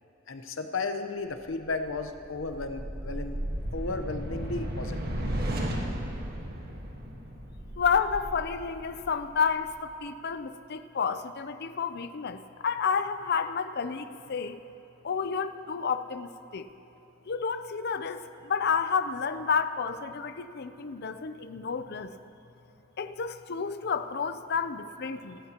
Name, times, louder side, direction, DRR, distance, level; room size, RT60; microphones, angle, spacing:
voice 1, 0.3-3.4 3.7-5.1, left 3 dB, 80° left, 6 dB, 0.9 m, -34 dB
sound 1, 1.5-9.9, right 1 dB, 55° right, 1.6 m, -35 dB
voice 2, 7.8-14.6 15.0-16.7 17.3-22.1 23.0-25.4, left 6 dB, 55° left, 10 dB, 0.5 m, -30 dB
24.5 x 12.5 x 3.0 m, 3.0 s
head